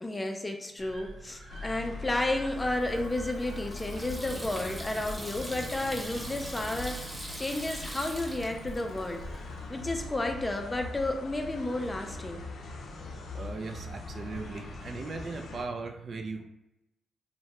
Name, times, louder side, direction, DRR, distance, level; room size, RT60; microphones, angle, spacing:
voice 1, 0.0-7.1 7.4-9.2 9.7-12.5, left 1 dB, 20° left, 4 dB, 0.5 m, -32 dB
sound 1, 0.8-9.5, right 1 dB, 75° right, 0.8 m, -50 dB
sound 2, 1.5-15.7, left 3 dB, 75° left, 0.4 m, -42 dB
Water tap faucet / Sink (filling or washing), 2.7-9.4, equal, 10° right, 0.7 m, -42 dB
voice 2, 13.3-16.4, right 3 dB, 55° right, 5 dB, 0.4 m, -38 dB
2.7 x 2.1 x 3.1 m, 0.92 s
cardioid pair, 70°, 0 cm